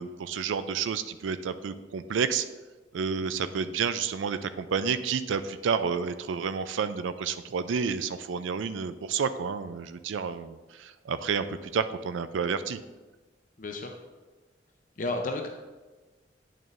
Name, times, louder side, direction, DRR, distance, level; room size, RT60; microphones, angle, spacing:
voice 1, 0.0-2.5 2.9-11.5 11.7-12.8, right 6 dB, 80° right, 12 dB, 0.4 m, -30 dB
voice 2, 13.6-13.9 15.0-15.5, left 2 dB, 45° left, 3 dB, 0.6 m, -31 dB
8.7 x 6.4 x 2.5 m, 1.2 s
head